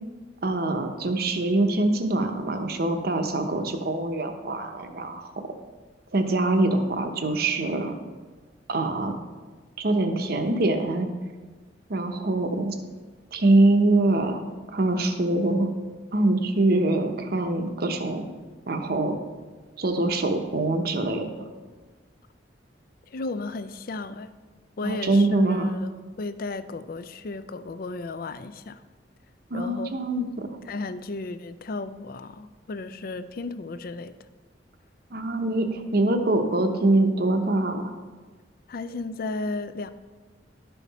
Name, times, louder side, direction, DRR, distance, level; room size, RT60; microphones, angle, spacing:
voice 1, 0.4-5.3 6.1-8.0 8.7-9.1 9.8-11.1 11.9-12.8 13.3-14.4 14.7-15.7 16.1-18.3 18.7-19.2 19.8-21.3 24.8-25.7 29.5-30.6 35.1-37.9, right 2 dB, 55° right, 6 dB, 0.8 m, -24 dB
voice 2, 23.1-24.3 24.8-25.9 26.2-28.8 29.5-29.9 30.7-34.1 38.7-39.9, left 3 dB, 50° left, 12 dB, 0.4 m, -34 dB
11.5 x 5.7 x 4.1 m, 1.3 s
head